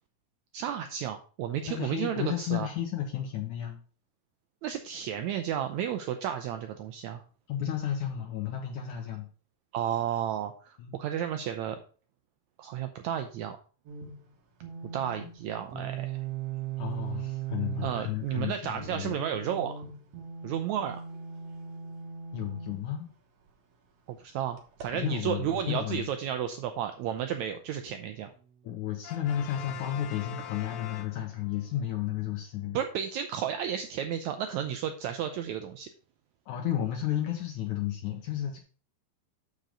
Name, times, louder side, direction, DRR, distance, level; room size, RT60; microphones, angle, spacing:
voice 1, 0.5-2.7 4.6-7.2 9.7-11.8 12.6-13.6 14.9-16.2 17.8-19.8 20.4-21.0 24.1-28.3 32.7-35.9, right 9 dB, 85° right, 7 dB, 1.6 m, -32 dB
voice 2, 1.7-3.8 7.5-9.3 10.8-11.0 16.8-19.2 22.3-23.1 24.9-26.1 28.6-32.8 36.5-38.6, left 11 dB, 70° left, 2 dB, 2.2 m, -32 dB
sound 1, 13.9-14.2 14.6-15.3 15.7-18.2 18.8-22.8 24.6-24.8, right 8 dB, 60° right, 2.1 m, -38 dB
Brass instrument, 29.0-31.7, left 9 dB, 90° left, 2.5 m, -43 dB
6.6 x 6.1 x 4.9 m, 0.40 s
omnidirectional pair, 3.9 m